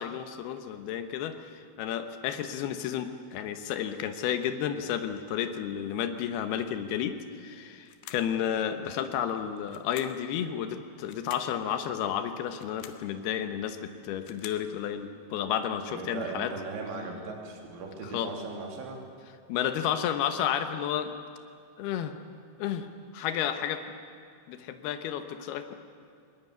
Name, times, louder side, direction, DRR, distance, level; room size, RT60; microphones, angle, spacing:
voice 1, 0.0-16.5 18.1-18.3 19.5-21.1 21.8-22.1 22.6-22.9 23.1-23.8 24.5-25.8, left 9 dB, 70° left, 8 dB, 2.8 m, -32 dB
sound 1, 7.9-8.4 9.7-10.3 11.0-11.6 12.5-13.1 14.0-14.7, left 11 dB, 90° left, 3.5 m, -47 dB
voice 2, 15.9-19.0, right 3 dB, 85° right, 1 dB, 5.3 m, -38 dB
21.0 x 20.5 x 9.6 m, 2.3 s
omnidirectional pair, 5.4 m